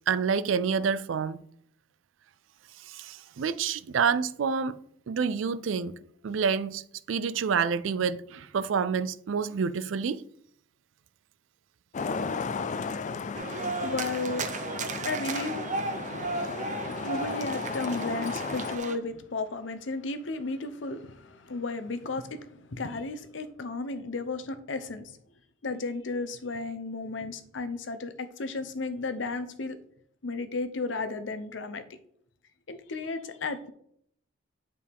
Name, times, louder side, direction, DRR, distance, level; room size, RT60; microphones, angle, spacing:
voice 1, 0.1-1.4 2.9-4.8 5.1-6.0 6.2-6.8 7.1-10.2, right 6 dB, 85° right, 0.4 m, -28 dB
Traffic noise roadway noise, 11.9-18.8, left 4 dB, 40° left, 0.4 m, -35 dB
sound 1, 13.3-19.0, right 4 dB, 40° right, 0.7 m, -35 dB
voice 2, 13.5-14.5 14.9-15.6 17.0-25.2 25.6-29.8 30.2-31.8 32.7-33.7, left 3 dB, 70° left, 0.8 m, -34 dB
8.4 x 4.8 x 3.5 m
head